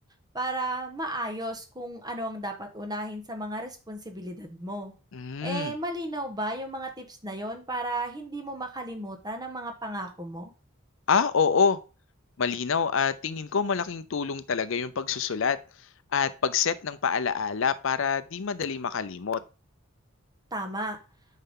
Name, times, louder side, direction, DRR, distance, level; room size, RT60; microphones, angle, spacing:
voice 1, 0.3-4.9 5.4-10.5 20.5-21.0, right 1 dB, 20° right, 1.3 m, -34 dB
voice 2, 5.1-5.7 11.1-11.8 12.4-15.6 16.1-19.4, left 6 dB, 65° left, 0.5 m, -26 dB
9.2 x 5.6 x 3.7 m
head